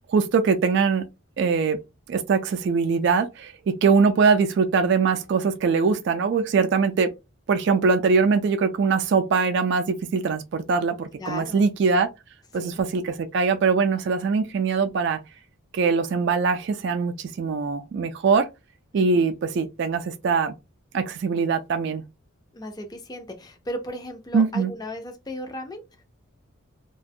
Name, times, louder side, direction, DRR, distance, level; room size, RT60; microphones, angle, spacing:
voice 1, 0.1-1.1 1.4-1.8 2.1-7.1 7.5-12.1 12.5-15.2 15.7-18.5 18.9-20.5 20.9-22.0 24.3-24.7, right 5 dB, 55° right, 0.3 m, -22 dB
voice 2, 11.2-11.7 12.6-12.8 19.0-19.3 22.5-25.8, equal, 20° left, 0.4 m, -36 dB
2.4 x 2.2 x 2.6 m
head